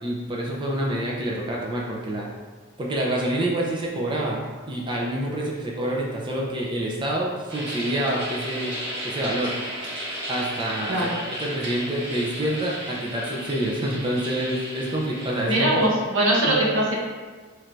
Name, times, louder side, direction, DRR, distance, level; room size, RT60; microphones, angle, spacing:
voice 1, 0.0-2.3 2.8-8.7 9.0-9.5 10.3-11.1 11.4-15.7 16.5-16.6, right 1 dB, 25° right, -3 dB, 0.5 m, -27 dB
sound 1, 7.5-15.9, equal, 60° right, 1.3 m, -34 dB
voice 2, 15.5-17.0, right 1 dB, 75° right, -5 dB, 0.9 m, -21 dB
3.2 x 2.6 x 4.5 m, 1.4 s
head